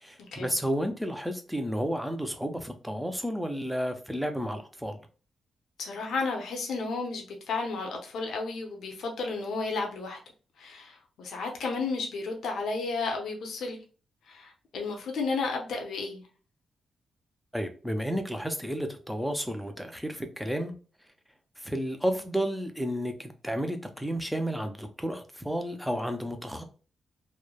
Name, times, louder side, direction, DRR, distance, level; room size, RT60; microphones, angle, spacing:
voice 1, 0.0-5.0 17.5-20.7 21.6-26.6, equal, ahead, 6 dB, 0.4 m, -32 dB
voice 2, 5.8-10.2 10.6-13.8 14.3-16.3, left 4 dB, 80° left, 1 dB, 0.6 m, -33 dB
3.1 x 2.0 x 2.2 m, 0.37 s
cardioid pair, 120°, 0 cm